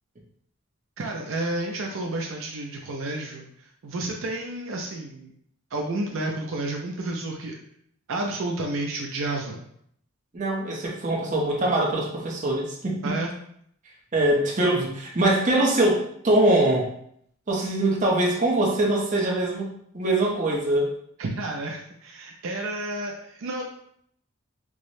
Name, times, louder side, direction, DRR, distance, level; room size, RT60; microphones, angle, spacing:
voice 1, 1.0-5.3 5.7-7.6 8.1-9.6 13.0-13.3 21.2-23.7, right 2 dB, 70° right, 0 dB, 0.4 m, -31 dB
voice 2, 10.3-13.0 14.1-16.9 17.5-20.9, right 1 dB, 35° right, -2 dB, 0.7 m, -23 dB
4.7 x 2.0 x 2.7 m, 0.68 s
head